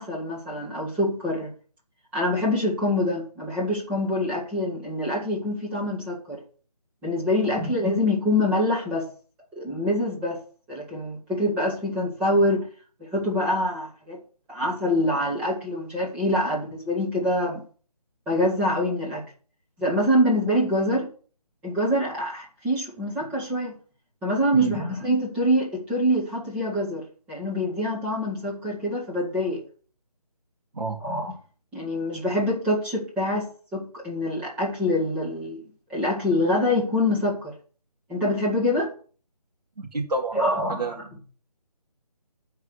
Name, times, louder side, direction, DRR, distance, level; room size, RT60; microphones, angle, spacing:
voice 1, 0.0-1.5 2.1-6.4 7.0-9.1 9.6-10.4 10.7-12.7 13.0-14.2 14.5-17.6 18.3-19.2 19.8-21.1 21.6-23.7 24.2-29.6 31.0-31.3 31.7-35.6 35.9-37.5 38.1-38.9 40.3-41.0, left 1 dB, 5° right, -5 dB, 2.2 m, -25 dB
voice 2, 39.8-40.9, right 3 dB, 85° right, -2 dB, 2.3 m, -29 dB
11.0 x 4.8 x 8.2 m, 0.41 s
figure-of-eight pair, 170°, 20 cm